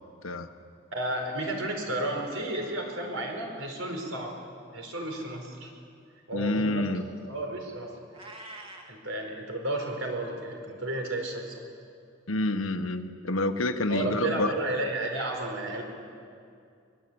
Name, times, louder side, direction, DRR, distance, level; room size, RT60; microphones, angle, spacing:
voice 1, 0.2-0.5 6.3-7.1 12.3-14.5, left 2 dB, 80° left, 8 dB, 1.4 m, -28 dB
voice 2, 0.9-4.4 4.7-5.7 6.3-6.9 7.3-7.9 8.9-11.5 13.9-15.8, right 1 dB, 75° right, 2 dB, 4.8 m, -32 dB
Meow, 8.1-9.0, right 2 dB, 25° right, 2.0 m, -44 dB
24.0 x 21.5 x 8.8 m, 2.4 s
head